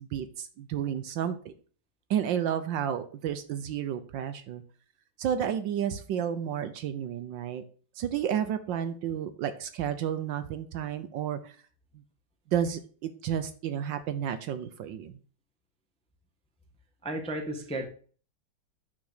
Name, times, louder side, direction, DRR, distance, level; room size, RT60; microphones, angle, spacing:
voice 1, 0.0-1.5 2.1-4.6 5.2-7.6 8.0-11.6 12.5-15.2, right 9 dB, 75° right, 10 dB, 1.2 m, -31 dB
voice 2, 17.0-17.9, right 1 dB, 5° left, 3 dB, 0.6 m, -33 dB
9.6 x 3.8 x 6.4 m, 0.43 s
omnidirectional pair, 2.3 m